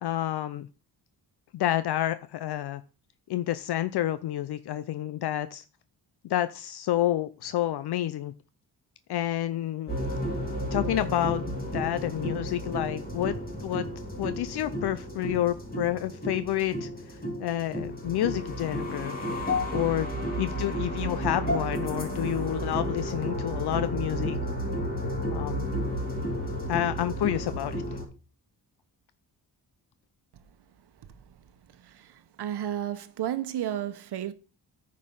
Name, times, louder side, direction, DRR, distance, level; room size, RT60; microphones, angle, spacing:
voice 1, 0.0-0.7 1.5-2.8 3.3-5.6 6.2-8.3 9.1-9.9 10.7-13.3 13.6-13.9 14.2-19.2 19.7-24.4 25.3-25.8 26.7-27.8, left 13 dB, 75° left, 0.6 m, -29 dB
sound 1, 9.9-28.0, equal, 20° left, 3.6 m, -32 dB
voice 2, 31.0-34.3, right 11 dB, 75° right, 1.0 m, -34 dB
9.7 x 5.3 x 5.4 m
cardioid pair, 115°, 40 cm